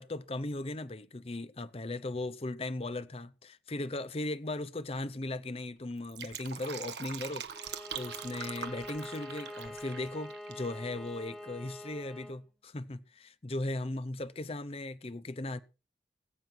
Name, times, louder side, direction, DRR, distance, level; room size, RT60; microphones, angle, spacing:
voice 1, 0.0-15.6, left 2 dB, 35° left, 0.7 m, -38 dB
Fill (with liquid), 5.9-10.7 11.0-11.1, right 7 dB, 75° right, 1.2 m, -43 dB
Bowed string instrument, 7.5-12.4, left 1 dB, ahead, 1.3 m, -45 dB
19.5 x 7.7 x 4.6 m
head